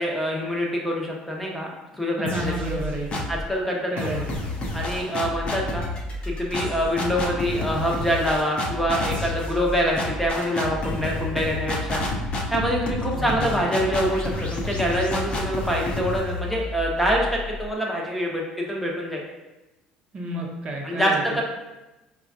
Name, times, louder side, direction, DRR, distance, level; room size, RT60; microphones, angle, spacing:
voice 1, 0.0-1.7 2.0-2.5 3.3-4.1 4.7-5.8 6.3-12.0 12.5-19.2 20.8-21.4, equal, 5° left, -2 dB, 0.9 m, -25 dB
voice 2, 2.2-3.2 3.9-4.2 13.1-13.6 20.1-21.4, right 1 dB, 40° right, 0 dB, 0.7 m, -30 dB
sound 1, 2.3-3.5 4.0-17.7, left 2 dB, 40° left, 0.8 m, -30 dB
4.8 x 2.4 x 2.5 m, 1.0 s
hypercardioid pair, 70°, 3 cm